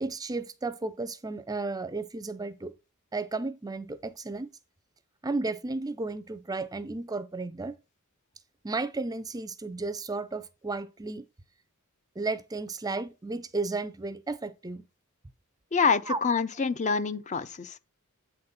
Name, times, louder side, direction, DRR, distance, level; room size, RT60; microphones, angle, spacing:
voice 1, 0.0-2.7 3.1-4.5 5.2-7.8 8.6-11.2 12.2-14.8 16.1-16.2, right 3 dB, 15° right, 0.5 m, -33 dB
voice 2, 15.7-17.8, left 5 dB, 35° left, 0.6 m, -26 dB
8.5 x 4.1 x 5.2 m
head